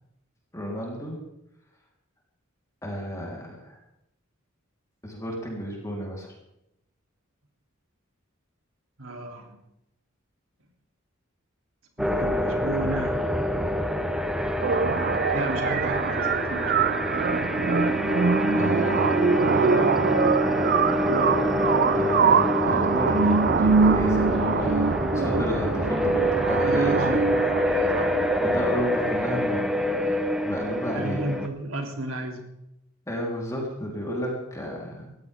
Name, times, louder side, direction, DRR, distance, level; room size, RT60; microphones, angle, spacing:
voice 1, 0.5-1.2 2.8-3.8 5.0-6.3 18.6-20.0 21.9-27.3 27.7-27.9 28.4-30.2 30.4-31.2 33.1-35.2, equal, 15° left, -2 dB, 3.8 m, -32 dB
voice 2, 9.0-9.6 12.0-13.2 15.3-17.1 21.0-21.4 26.6-27.4 27.9-28.2 30.9-32.4, right 2 dB, 75° right, 3 dB, 3.0 m, -33 dB
sound 1, 12.0-31.5, equal, ahead, 1.1 m, -26 dB
sound 2, 14.6-28.6, right 5 dB, 45° right, 0.5 m, -24 dB
19.5 x 15.0 x 3.6 m, 0.84 s
head